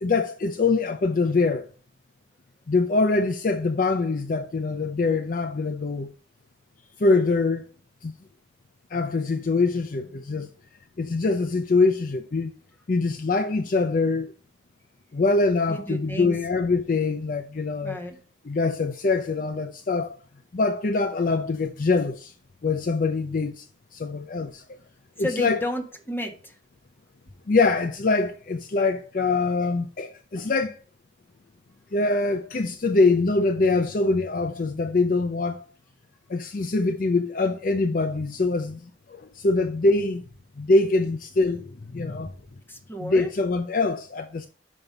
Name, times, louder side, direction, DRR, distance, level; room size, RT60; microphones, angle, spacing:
voice 1, 0.0-1.6 2.7-6.1 7.0-7.6 8.9-10.5 11.0-12.5 12.9-14.3 15.1-18.0 18.5-20.2 20.5-22.3 22.6-23.6 24.0-24.5 25.2-25.6 27.5-30.7 31.9-35.6 36.3-38.8 39.4-40.2 40.6-41.7 41.9-42.3 43.0-44.5, left 3 dB, 45° left, 0.4 m, -23 dB
voice 2, 15.7-16.3 17.8-18.1 25.2-26.3 42.7-43.3, equal, 10° left, 1.4 m, -31 dB
5.9 x 5.3 x 5.3 m
head